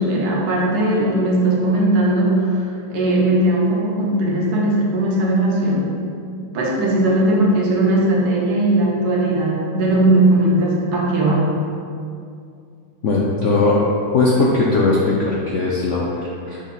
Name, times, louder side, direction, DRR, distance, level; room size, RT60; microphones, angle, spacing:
voice 1, 0.0-2.5 2.9-5.9 6.5-11.5, right 1 dB, 65° right, -3 dB, 1.4 m, -18 dB
voice 2, 13.0-13.8 14.1-16.6, left 3 dB, 65° left, -4 dB, 0.7 m, -19 dB
6.1 x 4.2 x 4.0 m, 2.4 s
omnidirectional pair, 1.9 m